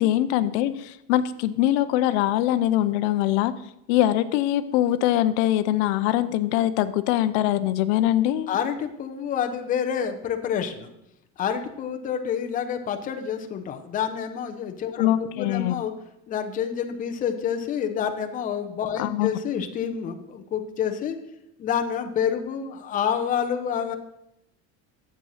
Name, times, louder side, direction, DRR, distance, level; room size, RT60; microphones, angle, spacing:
voice 1, 0.0-3.5 3.9-8.5 15.0-15.8 19.0-19.4, left 13 dB, 75° left, 12 dB, 0.7 m, -23 dB
voice 2, 8.5-10.9 11.4-15.9 16.3-21.2 21.6-24.0, left 8 dB, 25° left, 5 dB, 0.8 m, -28 dB
10.0 x 7.6 x 5.6 m, 0.81 s
cardioid pair, 175°, 34 cm